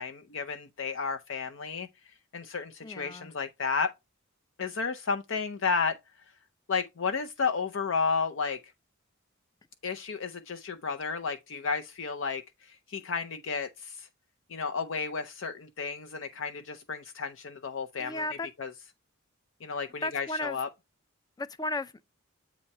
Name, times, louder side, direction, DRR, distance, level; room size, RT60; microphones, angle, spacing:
voice 1, 0.0-3.9 4.6-6.0 6.7-8.6 9.8-14.1 14.5-18.7 19.6-20.7, left 5 dB, 65° left, 0.6 m, -32 dB
voice 2, 2.8-3.3 18.0-18.5 20.0-20.6 21.4-22.0, left 2 dB, 20° left, 0.4 m, -34 dB
8.6 x 3.0 x 5.3 m
head